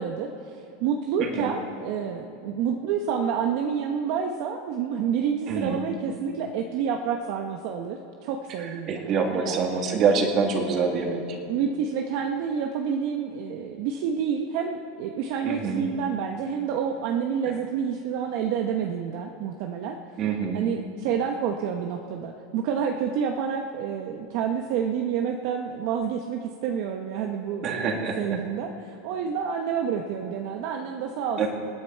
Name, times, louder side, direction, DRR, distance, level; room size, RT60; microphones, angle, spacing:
voice 1, 0.0-9.7 11.5-20.0 20.5-31.5, right 7 dB, 55° right, 3 dB, 0.9 m, -29 dB
voice 2, 1.2-1.5 5.5-5.8 8.6-11.4 15.4-15.8 20.2-20.6 27.6-28.4 31.4-31.5, right 5 dB, 35° right, 2 dB, 2.1 m, -26 dB
27.0 x 9.6 x 4.6 m, 2.7 s
supercardioid pair, 150°, 0 cm